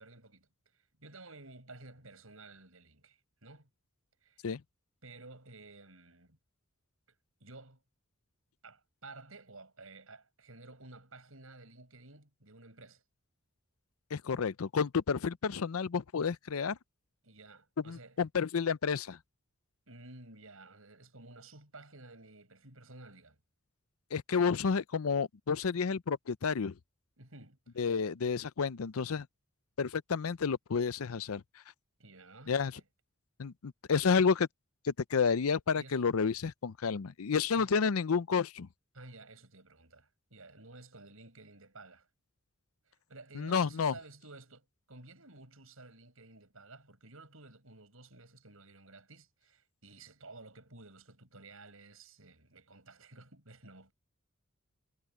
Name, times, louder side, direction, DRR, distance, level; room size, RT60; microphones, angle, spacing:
voice 1, 0.0-3.7 4.2-4.4 5.0-6.4 7.4-7.8 8.6-13.0 17.2-18.2 19.9-23.4 27.2-27.6 32.0-32.8 35.8-36.1 37.5-37.8 38.9-42.1 42.9-53.9, right 2 dB, 70° right, 7.6 m, -53 dB
voice 2, 14.1-16.8 17.9-19.2 24.1-26.7 27.8-29.3 29.8-31.4 32.5-32.7 33.4-34.5 34.8-38.7 43.3-43.9, left 5 dB, 80° left, 0.6 m, -30 dB
head